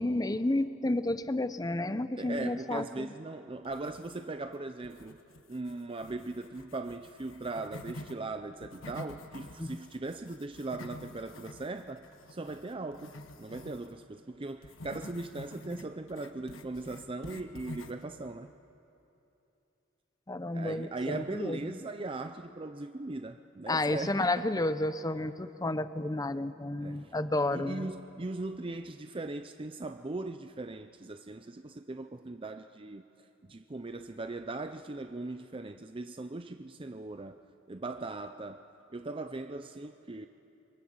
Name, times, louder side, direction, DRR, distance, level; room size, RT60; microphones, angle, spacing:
voice 1, 0.0-3.1 9.6-9.7 20.3-21.7 23.7-27.9, left 2 dB, 20° left, 12 dB, 0.7 m, -31 dB
voice 2, 2.2-5.2 5.5-18.5 20.5-24.3 26.8-27.1 27.5-33.0 33.4-37.4 37.7-40.3, right 2 dB, 25° right, 8 dB, 0.6 m, -39 dB
sound 1, 3.6-4.5 4.8-8.2 8.5-13.9 14.6-18.1, left 1 dB, 75° left, 1.5 m, -48 dB
27.0 x 23.0 x 7.9 m, 2.9 s
head